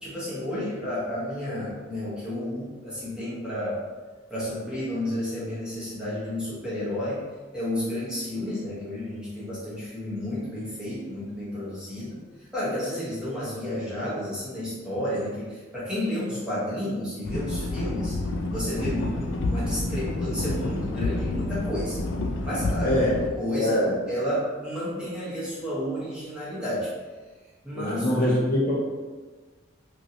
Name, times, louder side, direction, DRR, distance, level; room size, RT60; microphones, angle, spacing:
voice 1, 0.0-3.8 4.3-7.2 7.5-12.2 12.5-18.2 18.5-22.0 22.4-26.9 27.6-28.4, left 1 dB, 5° right, -10 dB, 0.9 m, -31 dB
sound 1, 17.2-23.3, left 2 dB, 65° left, 0.3 m, -29 dB
voice 2, 22.8-23.1 23.6-23.9 27.7-28.7, left 1 dB, 40° left, -7 dB, 0.8 m, -23 dB
3.0 x 2.6 x 2.7 m, 1.3 s
head